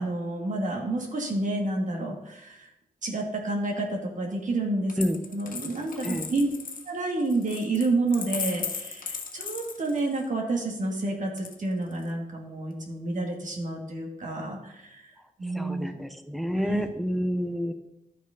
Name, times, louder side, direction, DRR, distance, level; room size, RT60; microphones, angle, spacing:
voice 1, 0.0-2.7 3.0-5.0 5.3-6.5 6.9-15.0 15.4-15.9 16.5-16.8, right 2 dB, 60° right, 0 dB, 2.2 m, -29 dB
Coin (dropping), 4.9-10.3 11.4-12.1, left 5 dB, 70° left, 1.2 m, -37 dB
voice 2, 15.5-17.7, equal, ahead, 8 dB, 1.0 m, -29 dB
11.5 x 6.2 x 5.2 m, 0.87 s
wide cardioid pair, 105°, 15 cm